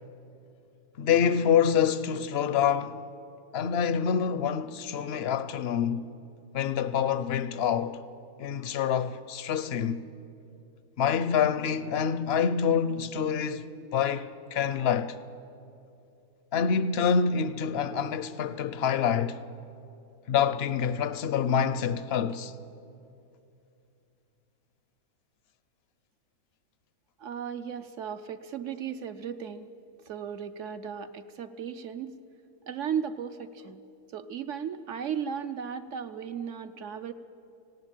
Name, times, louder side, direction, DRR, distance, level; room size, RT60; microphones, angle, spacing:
voice 1, 1.0-3.0 3.5-6.1 6.5-8.0 8.4-10.0 11.0-15.2 16.5-19.4 20.3-22.5, left 7 dB, 60° left, 0.7 m, -26 dB
voice 2, 27.2-29.7 30.1-32.2 32.7-33.8 34.1-37.1, right 7 dB, 65° right, 0.9 m, -35 dB
18.5 x 17.0 x 8.9 m
omnidirectional pair, 1.6 m